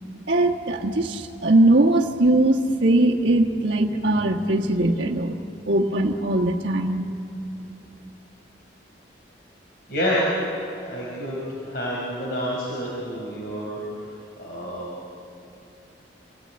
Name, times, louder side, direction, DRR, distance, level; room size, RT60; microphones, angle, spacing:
voice 1, 0.3-5.4 5.7-7.1, right 1 dB, 65° right, -5 dB, 1.4 m, -20 dB
voice 2, 9.9-10.3 10.8-14.1 14.4-14.9, equal, 55° left, -5 dB, 4.7 m, -28 dB
27.5 x 17.0 x 9.7 m, 2.8 s
head